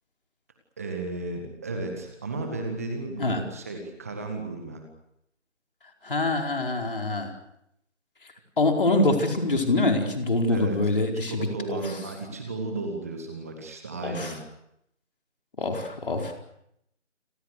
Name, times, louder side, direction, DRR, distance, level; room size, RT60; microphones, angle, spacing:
voice 1, 0.8-4.8 10.5-10.8 11.1-14.4, right 3 dB, 10° right, 4 dB, 1.8 m, -34 dB
voice 2, 6.0-7.3 8.6-11.9 14.0-14.3 15.6-16.3, left 2 dB, 45° left, 2 dB, 4.9 m, -25 dB
29.5 x 23.0 x 6.6 m, 0.79 s
figure-of-eight pair, 170°, 37 cm